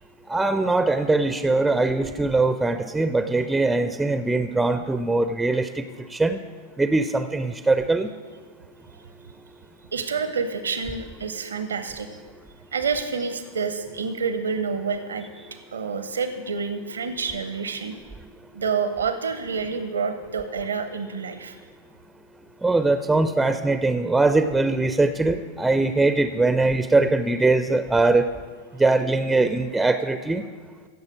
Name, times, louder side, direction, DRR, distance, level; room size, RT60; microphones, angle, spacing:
voice 1, 0.3-5.8 6.2-6.4 6.8-8.1 22.6-28.2 28.8-30.4, right 3 dB, 5° right, 11 dB, 0.4 m, -21 dB
voice 2, 9.9-12.1 12.7-15.3 15.7-18.0 18.5-21.6, right 5 dB, 70° right, 10 dB, 0.6 m, -28 dB
16.0 x 6.7 x 4.7 m, 1.5 s
figure-of-eight pair, 90°, 0 cm